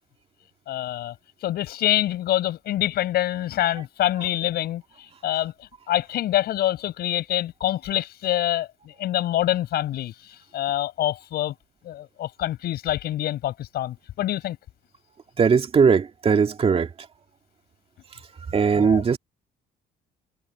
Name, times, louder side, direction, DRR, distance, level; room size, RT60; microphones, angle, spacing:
voice 1, 0.7-1.1 1.4-4.8 5.2-5.5 5.9-10.1 10.5-11.5 11.8-14.6 18.7-19.0, left 13 dB, 70° left, 6.1 m, -25 dB
voice 2, 15.4-16.9 18.5-19.2, right 6 dB, 35° right, 2.2 m, -19 dB
cardioid pair, 110°, 17 cm